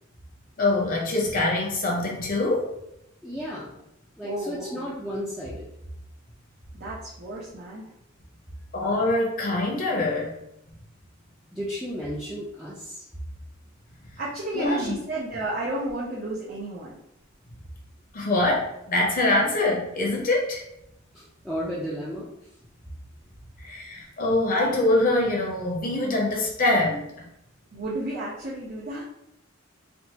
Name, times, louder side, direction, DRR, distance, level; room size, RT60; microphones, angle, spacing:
voice 1, 0.6-2.7 8.7-10.3 14.5-14.9 18.1-20.6 23.6-27.3, left 2 dB, 45° left, -1 dB, 0.8 m, -24 dB
voice 2, 3.2-3.8 4.2-5.7 11.5-13.0 21.1-22.3, equal, ahead, -8 dB, 0.5 m, -33 dB
voice 3, 4.2-4.9 6.7-7.9 14.2-17.0 27.7-29.0, right 1 dB, 50° right, -6 dB, 0.7 m, -32 dB
3.5 x 2.4 x 2.9 m, 0.80 s
head